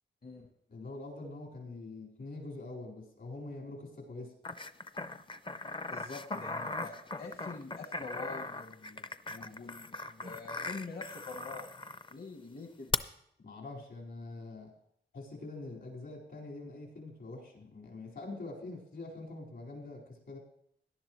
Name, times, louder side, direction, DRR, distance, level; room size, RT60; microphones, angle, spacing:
voice 1, 0.7-4.4 13.4-14.7 15.1-20.4, left 2 dB, 75° left, -2 dB, 4.2 m, -44 dB
sound 1, 4.4-12.1 12.9-13.0, left 3 dB, 25° left, 0.5 m, -39 dB
voice 2, 5.9-11.7 12.1-12.9, left 3 dB, 50° left, 3 dB, 1.1 m, -45 dB
17.5 x 11.0 x 3.1 m, 0.71 s
cardioid pair, 75°, 19 cm